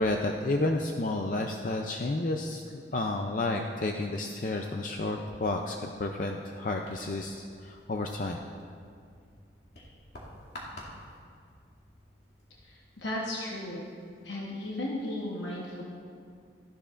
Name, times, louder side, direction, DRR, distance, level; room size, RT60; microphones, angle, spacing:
voice 1, 0.0-8.4, left 2 dB, 45° left, 3 dB, 0.4 m, -31 dB
sound 1, 6.8-13.3, left 1 dB, 60° left, 2.5 m, -50 dB
voice 2, 12.6-13.9 14.2-15.8, left 1 dB, 90° left, -4 dB, 1.2 m, -35 dB
15.0 x 12.0 x 2.5 m, 2.3 s
head